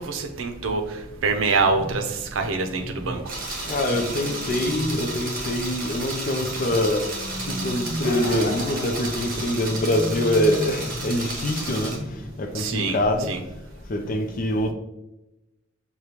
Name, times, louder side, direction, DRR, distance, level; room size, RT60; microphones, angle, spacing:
voice 1, 0.0-3.4 12.5-13.0 13.3-13.4, right 4 dB, 75° right, 0.6 m, -25 dB
sound 1, 1.3-5.9 6.3-12.3, equal, 5° right, 0.7 m, -35 dB
sound 2, 3.3-12.0, right 2 dB, 45° right, 1.1 m, -33 dB
voice 2, 3.7-7.1 7.4-12.0 12.4-13.3 13.9-14.7, left 1 dB, 45° left, 0.5 m, -24 dB
sound 3, 7.9-9.9, left 1 dB, 65° left, 0.9 m, -32 dB
6.5 x 2.2 x 3.0 m
head